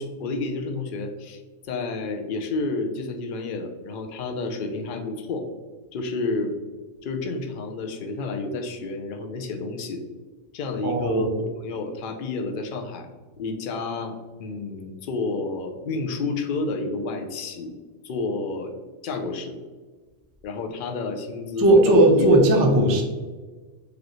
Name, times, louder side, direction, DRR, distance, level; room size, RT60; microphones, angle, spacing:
voice 1, 0.0-5.5 5.9-6.6 7.0-10.0 10.5-13.1 13.4-17.7 18.0-18.7 19.0-19.6 20.4-22.3, left 3 dB, 60° left, 4 dB, 0.6 m, -30 dB
voice 2, 10.8-11.2 21.6-23.0, right 1 dB, 35° right, 1 dB, 0.3 m, -17 dB
5.0 x 2.5 x 2.9 m, 1.3 s
omnidirectional pair, 1.3 m